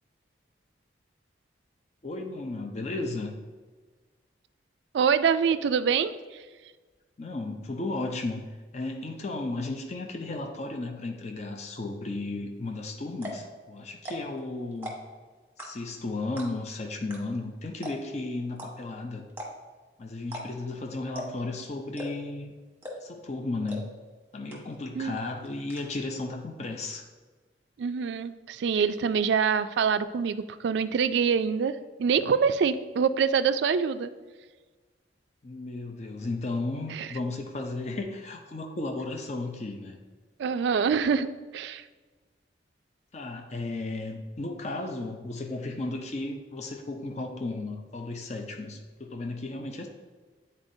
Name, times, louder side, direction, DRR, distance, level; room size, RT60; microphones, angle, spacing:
voice 1, 2.0-3.4 7.2-15.0 15.6-19.2 20.0-22.5 23.0-23.9 24.3-27.0 35.4-40.0 43.1-49.9, left 2 dB, 35° left, 3 dB, 0.5 m, -34 dB
voice 2, 4.9-6.2 25.0-25.2 27.8-34.1 36.9-37.1 40.4-41.8, right 6 dB, 70° right, 12 dB, 0.3 m, -25 dB
sound 1, 12.7-12.8 13.1-13.5 13.9-14.4 14.7-15.2 15.6-16.0 16.4-16.7 17.1-17.2 17.4-17.5 17.8-18.2 18.6-18.7 19.3-19.7 20.2-20.4 20.7-20.8 21.1-21.5 21.9-22.3 22.8-23.2 23.7-23.8 24.1-24.2 24.5-24.9 25.2-25.8, equal, 10° right, 1.1 m, -39 dB
8.9 x 4.2 x 2.6 m, 1.4 s
head